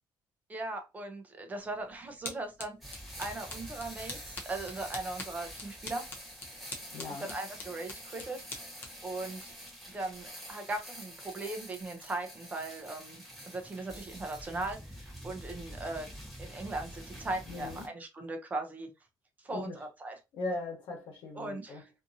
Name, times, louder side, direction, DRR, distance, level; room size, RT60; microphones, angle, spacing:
voice 1, 0.5-2.7 3.2-6.1 7.2-8.4 9.0-9.5 9.9-16.1 16.4-18.9 19.4-20.2 21.3-21.9, right 2 dB, 20° right, 0.6 m, -39 dB
sound 1, 1.6-10.3, left 3 dB, 25° left, 0.7 m, -47 dB
sound 2, 2.8-17.9, equal, ahead, 1.2 m, -47 dB
voice 2, 6.9-7.3 17.5-17.9 19.5-19.7 20.3-21.8, left 2 dB, 90° left, 1.0 m, -39 dB
2.7 x 2.5 x 2.6 m
cardioid pair, 175°, 8 cm